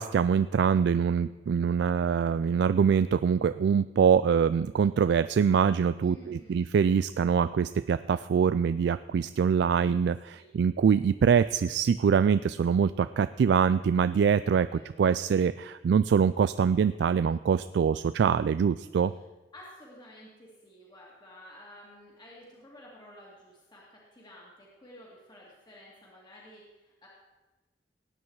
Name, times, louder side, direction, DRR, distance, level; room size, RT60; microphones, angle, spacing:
voice 1, 0.0-19.1, right 6 dB, 65° right, 14 dB, 0.3 m, -24 dB
voice 2, 6.0-6.6 10.3-10.5 14.7-14.9 19.1-19.2 19.5-27.1, left 1 dB, 25° left, -5 dB, 2.2 m, -52 dB
18.0 x 8.7 x 4.7 m, 1.2 s
head